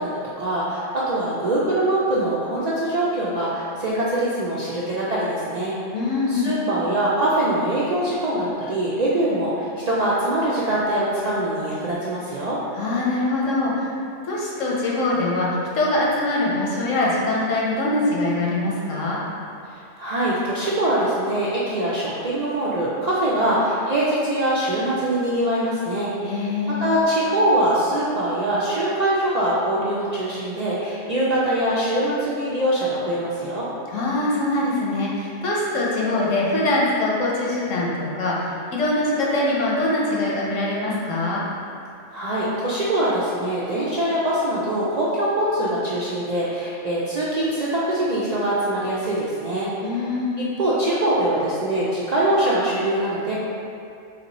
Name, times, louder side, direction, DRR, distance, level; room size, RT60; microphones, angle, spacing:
voice 1, 0.0-5.8 6.3-12.6 20.0-26.1 26.4-26.5 26.8-33.7 42.1-49.7 50.0-50.1 50.4-53.3, right 1 dB, 60° right, -8 dB, 0.4 m, -23 dB
voice 2, 5.9-6.5 12.7-13.9 14.2-15.5 15.7-19.2 26.2-26.8 33.9-41.4 49.8-50.5, left 2 dB, 90° left, -5 dB, 1.2 m, -23 dB
3.5 x 2.7 x 4.0 m, 2.5 s
omnidirectional pair, 1.3 m